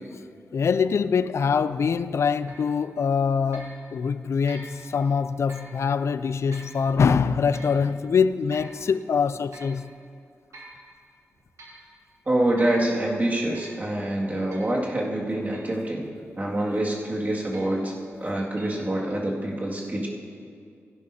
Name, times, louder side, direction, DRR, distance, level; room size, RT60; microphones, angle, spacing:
voice 1, 0.5-9.9, left 6 dB, 70° left, 0.3 m, -24 dB
sound 1, 2.5-2.7 3.5-3.8 4.5-4.8 5.5-5.7 6.5-6.8 7.5-7.8 8.5-8.8 9.5-9.8 10.5-10.8 11.3-11.8 12.6-12.8 13.5-13.8 14.5-14.8 15.5-15.8 16.6-16.9 17.5-17.9 18.5-18.7, right 1 dB, 90° right, 2.1 m, -46 dB
voice 2, 12.3-16.1 16.4-17.9 18.2-20.1, right 1 dB, 35° right, 2.1 m, -26 dB
16.0 x 11.5 x 2.8 m
wide cardioid pair, 85°, 5 cm